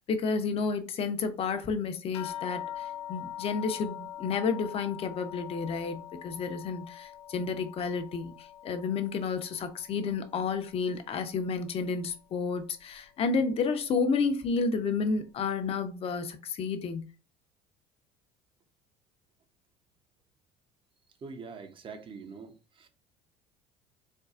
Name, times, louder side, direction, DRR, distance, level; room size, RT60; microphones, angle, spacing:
voice 1, 0.1-17.1, left 5 dB, 45° left, 0.7 m, -31 dB
sound 1, 2.1-11.0 11.3-12.2 12.9-13.0 13.4-13.6, left 11 dB, 85° left, 0.5 m, -43 dB
voice 2, 21.2-22.9, right 5 dB, 40° right, 0.8 m, -44 dB
4.4 x 2.3 x 2.4 m
hypercardioid pair, 80°, 14 cm